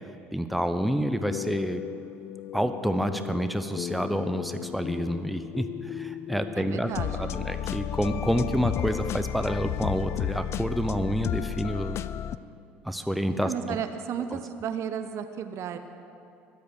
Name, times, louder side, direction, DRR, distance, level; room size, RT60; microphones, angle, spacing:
voice 1, 0.3-1.8 2.5-6.9 7.2-12.0 12.8-13.8 14.3-14.4, equal, ahead, 8 dB, 0.8 m, -28 dB
sound 1, 1.1-12.4, left 11 dB, 45° left, 0.4 m, -34 dB
voice 2, 6.5-7.3 13.4-15.8, right 8 dB, 50° right, 9 dB, 0.9 m, -33 dB
23.5 x 8.4 x 6.5 m, 2.5 s
figure-of-eight pair, 65°, 6 cm